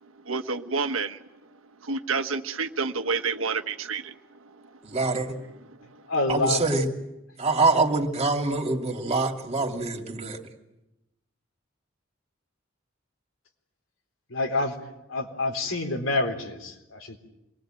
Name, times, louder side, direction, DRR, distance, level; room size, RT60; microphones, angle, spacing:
voice 1, 0.0-1.3 1.8-4.8 5.1-5.4 5.9-6.0, right 4 dB, 85° right, 9 dB, 1.3 m, -30 dB
voice 2, 4.8-5.4 6.3-6.9 7.4-10.4, right 3 dB, 30° right, 3 dB, 2.7 m, -25 dB
voice 3, 6.1-6.6 14.3-14.8 15.1-17.2, left 2 dB, 80° left, 3 dB, 3.8 m, -27 dB
27.0 x 21.5 x 9.1 m, 0.92 s
head